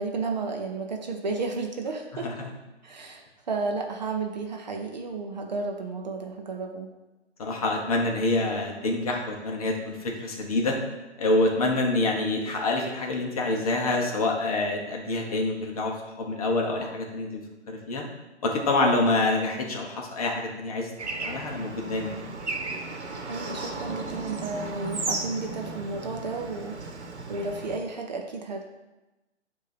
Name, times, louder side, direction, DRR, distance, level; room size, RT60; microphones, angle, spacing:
voice 1, 0.0-2.3 2.8-6.9 23.3-28.7, right 3 dB, 40° right, 3 dB, 0.7 m, -32 dB
voice 2, 7.4-10.8 11.2-17.4 17.7-18.0 18.4-20.9 21.2-22.2, left 2 dB, 30° left, 0 dB, 1.0 m, -26 dB
Bird / Traffic noise roadway noise, 21.0-27.8, right 3 dB, 70° right, 1.2 m, -35 dB
8.1 x 2.8 x 6.0 m, 1.1 s
figure-of-eight pair, 150°, 35 cm